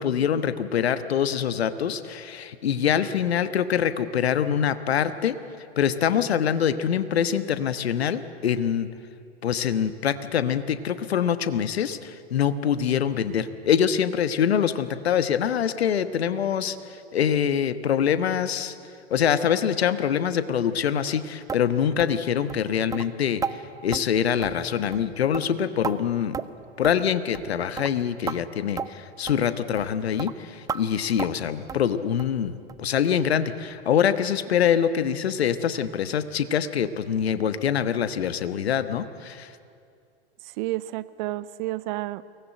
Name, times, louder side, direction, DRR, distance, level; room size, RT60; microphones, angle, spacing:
voice 1, 0.0-5.4 5.8-8.9 9.4-16.8 17.1-18.7 19.1-23.4 23.8-26.4 26.8-32.5 32.8-39.5, left 8 dB, 70° left, 12 dB, 1.3 m, -24 dB
sound 1, 21.5-21.6 22.0-22.2 22.5-22.6 22.9-23.1 23.4-23.6 23.9-24.1 24.4-24.7 24.9-25.1 25.3-26.0 26.3-26.6 26.8-27.0 27.3-27.5 27.8-27.9 28.3-28.4 28.8-28.9 29.3-29.4 29.8-29.9 30.2-30.3 30.7-30.8 31.2-31.4 31.7-31.9 32.2-32.4 32.7-32.8 33.2-33.3 33.7-33.8, right 6 dB, 10° right, 0.5 m, -33 dB
voice 2, 40.6-42.2, right 17 dB, 45° right, 17 dB, 0.8 m, -30 dB
23.0 x 19.0 x 8.9 m, 2.5 s
figure-of-eight pair, 95°, 33 cm